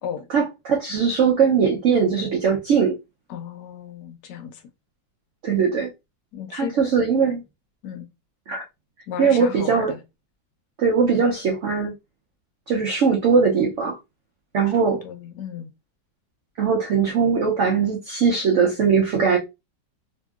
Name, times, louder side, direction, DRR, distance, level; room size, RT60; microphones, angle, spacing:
voice 1, 0.3-3.0 5.4-5.9 6.5-7.4 8.5-8.6 9.2-9.9 10.8-11.9 12.7-14.0 14.5-15.0 16.6-19.4, right 6 dB, 85° right, 0.6 m, -20 dB
voice 2, 3.3-4.6 6.3-6.7 7.8-8.1 9.1-10.0 14.7-15.7, left 8 dB, 75° left, 1.2 m, -34 dB
2.8 x 2.6 x 2.3 m
omnidirectional pair, 2.0 m